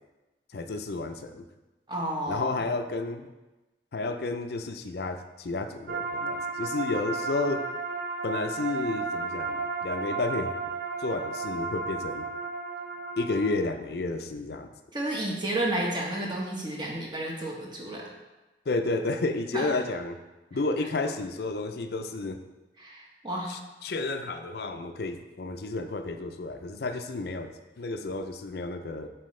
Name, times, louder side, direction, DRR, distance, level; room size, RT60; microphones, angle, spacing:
voice 1, 0.5-1.4 2.3-3.3 3.9-7.6 8.2-10.5 11.0-12.3 13.2-14.7 18.7-20.2 20.5-22.4 23.5-29.1, left 3 dB, 55° left, 7 dB, 0.5 m, -31 dB
voice 2, 1.9-2.4 14.9-18.0 19.5-19.7 22.8-23.5, right 1 dB, 25° right, -3 dB, 1.1 m, -31 dB
sound 1, 5.9-13.5, right 4 dB, 50° right, 0.6 m, -33 dB
7.6 x 4.5 x 3.2 m, 1.1 s
head